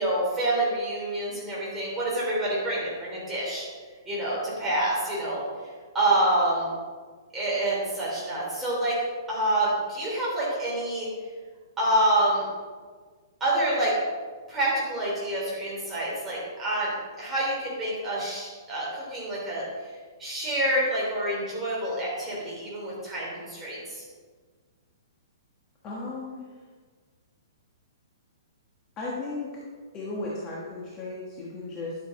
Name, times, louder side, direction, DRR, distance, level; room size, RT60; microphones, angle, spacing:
voice 1, 0.0-3.6 4.0-5.4 5.9-6.7 7.3-8.9 9.3-11.1 11.8-12.5 13.4-13.9 14.5-19.6 20.2-24.0, right 1 dB, 10° right, -7 dB, 3.2 m, -27 dB
voice 2, 25.8-26.4 29.0-29.6 29.9-32.0, left 2 dB, 20° left, -6 dB, 1.3 m, -35 dB
11.5 x 7.1 x 4.1 m, 1.5 s
hypercardioid pair, 170°, 2 cm